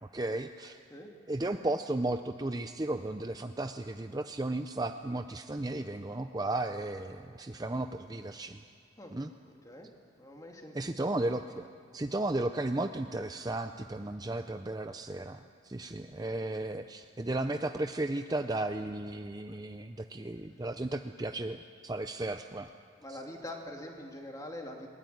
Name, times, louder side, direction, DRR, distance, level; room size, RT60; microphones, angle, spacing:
voice 1, 0.0-0.8 1.3-8.6 9.1-9.3 10.7-11.7 11.9-22.7, right 2 dB, 20° right, 7 dB, 0.5 m, -34 dB
voice 2, 9.4-9.9 10.2-11.1 20.5-20.6 23.0-24.9, left 1 dB, 15° left, 1 dB, 2.5 m, -44 dB
21.5 x 20.5 x 9.4 m, 2.3 s
head